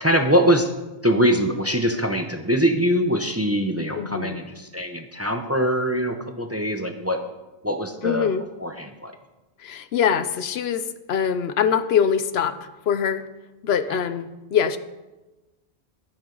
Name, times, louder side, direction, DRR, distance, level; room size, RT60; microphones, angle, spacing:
voice 1, 0.0-0.7 1.0-7.2 7.6-8.3 8.6-9.1 13.9-14.0, equal, 15° right, 6 dB, 0.6 m, -23 dB
voice 2, 4.0-4.4 8.0-8.4 9.6-12.6 12.9-13.3 13.6-14.8, left 7 dB, 75° left, 12 dB, 0.9 m, -23 dB
12.5 x 10.0 x 3.9 m, 1.1 s
omnidirectional pair, 1.1 m